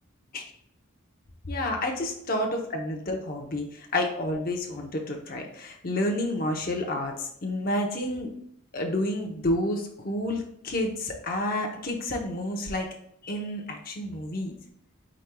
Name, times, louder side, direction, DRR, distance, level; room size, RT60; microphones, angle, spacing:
voice 1, 1.5-8.3 8.7-12.9 13.2-14.5, left 1 dB, 45° left, 2 dB, 0.8 m, -30 dB
5.1 x 4.4 x 2.2 m, 0.70 s
head